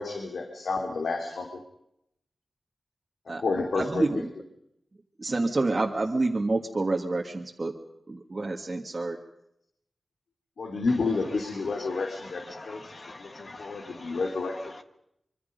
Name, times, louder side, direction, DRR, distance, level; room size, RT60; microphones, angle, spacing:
voice 1, 0.0-1.5 3.3-4.2 5.8-5.9 10.6-12.8 13.2-14.5, left 3 dB, 85° left, 3 dB, 2.9 m, -30 dB
voice 2, 3.8-4.3 5.2-7.7 8.1-9.2, right 2 dB, 35° right, 0 dB, 1.8 m, -28 dB
voice 3, 11.6-14.2 14.5-14.8, left 2 dB, 40° left, 9 dB, 1.3 m, -45 dB
25.5 x 24.5 x 5.3 m, 0.78 s
wide cardioid pair, 120°, 0 cm